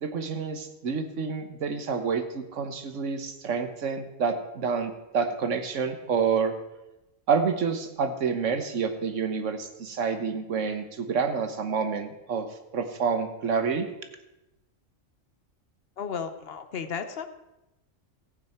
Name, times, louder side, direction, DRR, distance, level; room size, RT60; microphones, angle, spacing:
voice 1, 0.0-6.5 7.3-12.5 12.7-13.9, right 5 dB, 70° right, 7 dB, 1.5 m, -28 dB
voice 2, 16.0-17.3, left 6 dB, 55° left, 10 dB, 1.0 m, -34 dB
15.5 x 8.8 x 4.4 m, 0.96 s
omnidirectional pair, 1.3 m